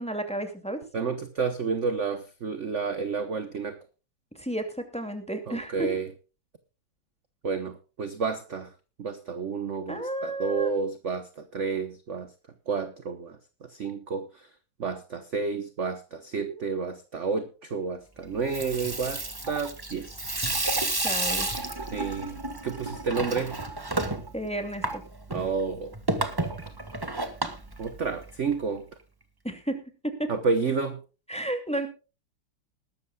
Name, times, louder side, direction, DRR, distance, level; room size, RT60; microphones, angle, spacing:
voice 1, 0.0-0.8 4.3-5.9 9.9-10.7 16.4-16.6 21.0-21.5 24.3-25.0 29.4-29.8 30.0-30.3 31.3-31.9, right 1 dB, 5° left, 6 dB, 2.2 m, -32 dB
voice 2, 0.9-3.8 5.5-6.1 7.4-8.7 9.0-12.3 12.7-14.5 14.8-20.2 21.9-23.6 25.3-26.0 27.8-28.8 30.3-31.0, right 5 dB, 45° right, 10 dB, 1.0 m, -30 dB
Water tap faucet / Sink (filling or washing), 18.3-28.5, right 2 dB, 15° right, 1.2 m, -32 dB
20.5 x 12.5 x 2.3 m, 0.32 s
omnidirectional pair, 2.3 m